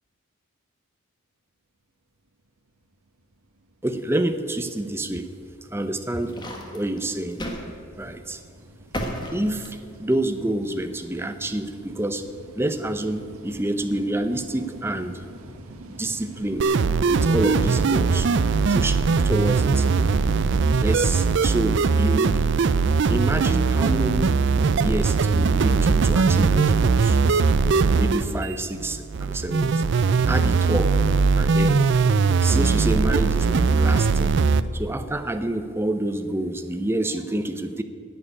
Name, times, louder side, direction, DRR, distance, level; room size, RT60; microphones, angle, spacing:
sound 1, 3.2-20.9, right 1 dB, 90° right, 1.1 m, -42 dB
voice 1, 3.8-5.3 5.7-6.4 6.7-7.4 8.0-8.4 9.3-12.3 12.5-15.3 15.9-16.7 17.1-18.4 18.7-19.9 20.4-22.4 23.1-24.4 24.7-27.2 28.0-29.8 30.3-31.0 31.4-31.8 32.4-34.4 34.7-37.8, right 1 dB, 10° right, 9 dB, 0.6 m, -28 dB
sound 2, 5.8-7.7 8.0-8.2 8.9-10.1, equal, 20° left, 1.5 m, -33 dB
sound 3, 16.6-34.6, right 4 dB, 55° right, 0.4 m, -20 dB
11.0 x 7.7 x 9.8 m, 2.3 s
head